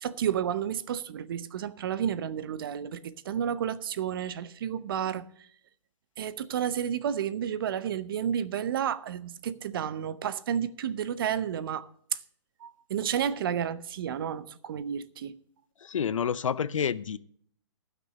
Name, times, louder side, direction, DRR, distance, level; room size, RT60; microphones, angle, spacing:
voice 1, 0.0-5.5 6.2-12.2 12.6-15.4, right 9 dB, 45° right, 0.6 m, -31 dB
voice 2, 15.8-17.2, left 7 dB, 85° left, 0.6 m, -29 dB
12.0 x 6.1 x 6.6 m
hypercardioid pair, 155°, 16 cm